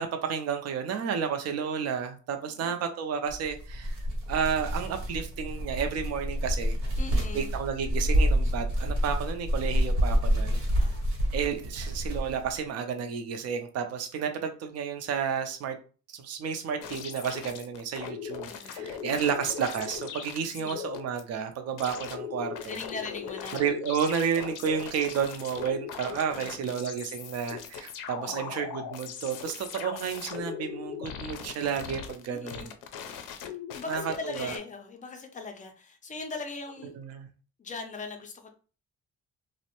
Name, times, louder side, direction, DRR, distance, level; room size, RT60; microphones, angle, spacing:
voice 1, 0.0-3.9 4.3-6.8 7.3-10.6 11.3-15.8 16.1-22.8 23.5-32.7 33.9-34.5 36.9-37.3, right 7 dB, 55° right, 6 dB, 0.5 m, -31 dB
voice 2, 2.5-2.9 7.0-7.5 10.8-11.1 18.4-19.3 20.6-20.8 22.6-23.6 26.3-26.7 28.2-28.7 32.3-32.7 33.3-36.9 37.6-38.5, left 4 dB, 25° left, 5 dB, 0.4 m, -41 dB
sound 1, 3.3-12.6, equal, 75° right, 1.0 m, -28 dB
sound 2, 16.8-21.2 21.8-34.6, left 7 dB, 85° left, 0.5 m, -39 dB
2.5 x 2.0 x 2.8 m, 0.37 s
cardioid pair, 140°, 30 cm